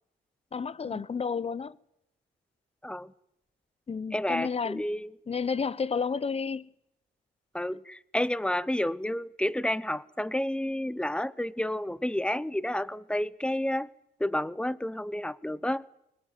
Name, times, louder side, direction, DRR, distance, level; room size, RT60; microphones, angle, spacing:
voice 1, 0.5-1.8 3.9-4.8 5.3-6.7, left 5 dB, 30° left, 0.8 m, -31 dB
voice 2, 4.1-5.1 7.5-13.9 14.2-15.9, left 1 dB, 5° left, 0.9 m, -30 dB
22.5 x 20.0 x 9.1 m
cardioid pair, 90°, 20 cm